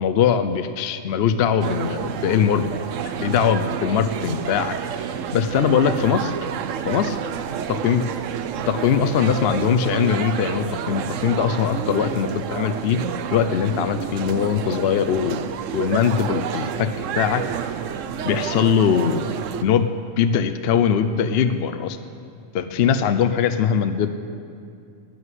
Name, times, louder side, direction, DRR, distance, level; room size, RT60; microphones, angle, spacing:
voice 1, 0.0-2.7 3.0-4.8 5.3-6.3 6.8-7.2 7.7-8.1 8.7-13.0 13.3-15.4 15.7-17.4 18.2-19.2 19.6-22.0 22.5-24.1, left 7 dB, 60° left, 10 dB, 0.8 m, -21 dB
sound 1, 1.6-19.6, right 8 dB, 80° right, 1.0 m, -29 dB
13.0 x 8.0 x 9.7 m, 2.5 s
omnidirectional pair, 1.3 m